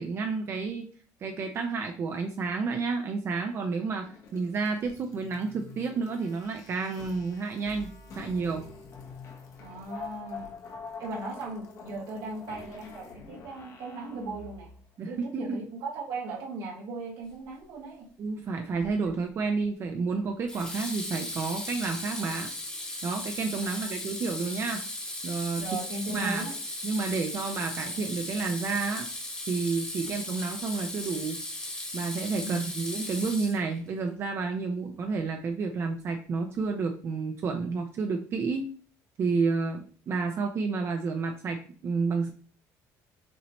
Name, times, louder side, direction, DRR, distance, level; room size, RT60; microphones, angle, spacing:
voice 1, 0.0-8.7 15.0-15.6 18.2-22.5 23.0-24.9 25.2-25.7 26.1-26.5 26.8-29.1 29.5-31.4 31.9-38.7 39.2-42.3, right 4 dB, 40° right, 4 dB, 0.5 m, -30 dB
sound 1, 3.6-14.9, left 4 dB, 45° left, 1.0 m, -46 dB
voice 2, 9.6-10.5 11.0-14.7 15.1-18.1 23.7-24.1 25.6-26.6 30.0-30.4 32.4-32.6, right 3 dB, 90° right, -4 dB, 2.0 m, -38 dB
Water tap faucet / Sink (filling or washing), 18.8-19.2 20.5-33.9, left 1 dB, 15° left, 1.3 m, -37 dB
6.0 x 2.9 x 3.0 m, 0.43 s
cardioid pair, 145°, 7 cm